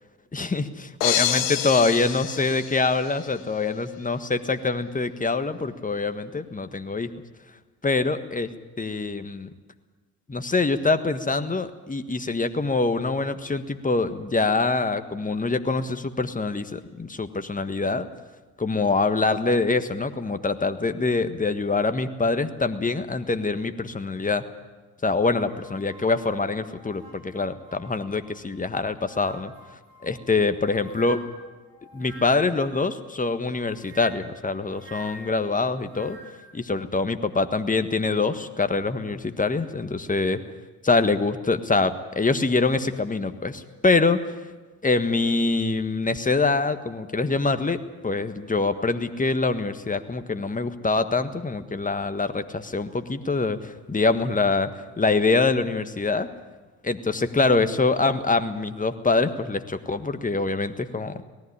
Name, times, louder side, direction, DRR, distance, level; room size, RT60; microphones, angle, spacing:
voice 1, 0.3-7.1 7.8-8.5 8.8-9.5 10.3-18.1 18.6-24.4 25.0-29.5 30.0-31.2 31.9-36.2 36.5-40.4 40.8-44.4 44.8-56.3 56.8-61.2, left 3 dB, 20° left, 10 dB, 1.6 m, -24 dB
sound 1, 1.0-3.3, left 11 dB, 85° left, 1.1 m, -27 dB
sound 2, 25.2-28.5 29.0-32.7 33.5-36.5, right 1 dB, 75° right, 4.5 m, -48 dB
18.5 x 14.5 x 10.0 m, 1.3 s
hypercardioid pair, 50°, 39 cm